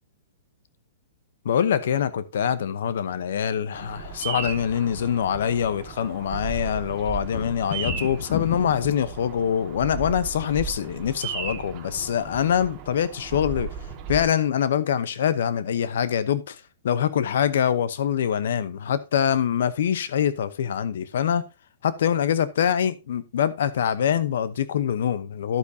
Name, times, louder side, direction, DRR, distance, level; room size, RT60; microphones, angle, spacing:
voice 1, 1.4-13.7 14.1-21.5 21.8-25.6, left 8 dB, 70° left, 0.9 m, -24 dB
Bird vocalization bird call bird song, 3.7-14.2, right 5 dB, 25° right, 2.0 m, -36 dB
sound 1, 3.9-4.0 5.9-6.0 6.3-8.9, left 9 dB, 40° left, 1.2 m, -34 dB
11.0 x 8.4 x 2.8 m
hypercardioid pair, 155°, 0 cm